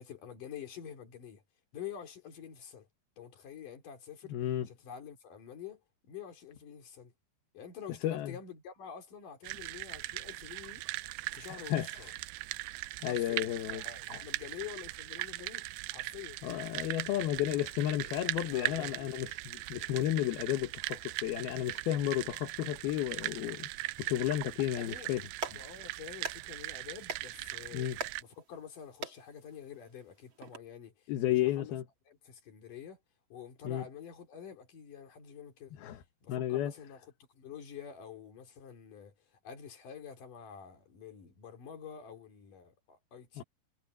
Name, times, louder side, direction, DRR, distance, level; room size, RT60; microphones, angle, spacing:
voice 1, 0.0-1.4 1.7-2.9 3.2-4.4 4.6-7.1 7.5-10.8 11.3-12.1 13.1-15.6 15.9-16.4 18.5-19.2 24.8-25.1 25.5-27.9 28.2-31.8 32.1-33.0 33.3-35.8 36.2-43.4, left 8 dB, 55° left, 4.8 m, -48 dB
voice 2, 4.3-4.7 8.0-8.4 11.5-12.1 13.0-13.8 14.1-14.2 16.4-23.7 24.0-25.2 27.7-28.0 31.1-31.8 33.6-33.9 35.8-36.0 36.3-36.7 43.4-43.5, left 13 dB, 70° left, 3.1 m, -32 dB
sound 1, 9.4-28.2, right 20 dB, 85° right, 2.5 m, -40 dB
Clapping, 25.1-30.6, right 5 dB, 35° right, 2.5 m, -45 dB
omnidirectional pair, 4.7 m